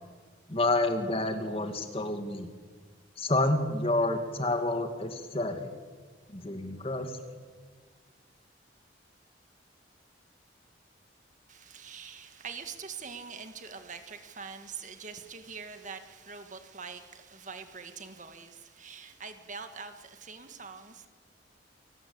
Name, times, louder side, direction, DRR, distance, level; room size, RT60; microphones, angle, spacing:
voice 1, 0.5-2.5 3.2-5.7 6.3-7.2, left 2 dB, 30° left, 6 dB, 2.3 m, -29 dB
voice 2, 11.5-21.1, right 5 dB, 40° right, 8 dB, 1.8 m, -44 dB
28.5 x 19.0 x 8.9 m, 1.5 s
head